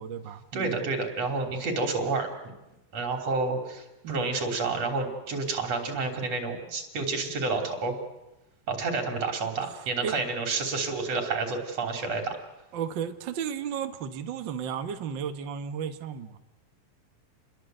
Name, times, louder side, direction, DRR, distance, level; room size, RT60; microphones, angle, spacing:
voice 1, 0.0-0.9 4.0-4.3 10.0-10.2 12.7-16.4, right 7 dB, 75° right, 7 dB, 1.0 m, -34 dB
voice 2, 0.5-2.3 2.9-7.9 8.7-12.4, right 3 dB, 45° right, 3 dB, 4.3 m, -29 dB
29.0 x 22.0 x 7.8 m, 0.96 s
omnidirectional pair, 4.0 m